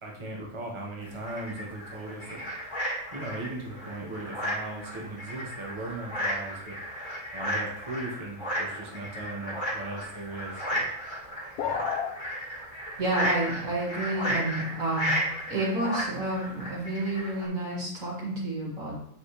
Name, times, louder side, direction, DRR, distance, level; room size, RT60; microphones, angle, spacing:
voice 1, 0.0-2.5 3.1-10.9 11.6-11.9, right 2 dB, 20° right, -2 dB, 1.2 m, -38 dB
sound 1, 1.0-17.5, equal, 35° left, 2.2 m, -34 dB
sound 2, 11.6-12.1, left 8 dB, 80° left, 1.2 m, -30 dB
voice 2, 13.0-19.0, right 1 dB, 60° right, -6 dB, 2.2 m, -30 dB
7.8 x 6.1 x 3.2 m, 0.73 s
omnidirectional pair, 1.6 m